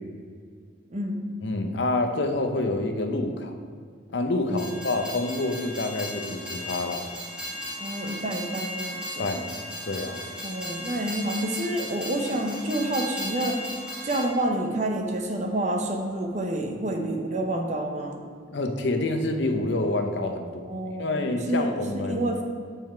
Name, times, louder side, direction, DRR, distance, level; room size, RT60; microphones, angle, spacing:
voice 1, 0.9-1.2 4.5-4.7 7.8-9.3 10.4-13.6 14.0-18.2 20.4-22.4, right 1 dB, 40° right, 3 dB, 0.8 m, -29 dB
voice 2, 1.4-3.6 4.1-7.1 9.2-9.5 9.9-10.2 18.5-20.6 21.0-22.3, left 2 dB, 65° left, 5 dB, 0.7 m, -27 dB
Train, 4.5-14.3, left 1 dB, 5° right, 1.8 m, -36 dB
7.4 x 5.4 x 4.5 m, 2.2 s
head